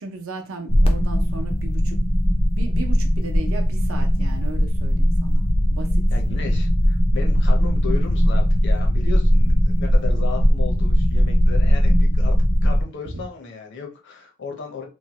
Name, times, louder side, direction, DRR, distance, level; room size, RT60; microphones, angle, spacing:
voice 1, 0.0-2.0 2.5-6.0, right 3 dB, 65° right, 0.6 m, -36 dB
sound 1, 0.7-12.8, equal, 25° left, 0.4 m, -18 dB
voice 2, 6.1-12.4 12.6-14.8, left 5 dB, 55° left, 0.7 m, -35 dB
3.1 x 2.2 x 2.9 m
head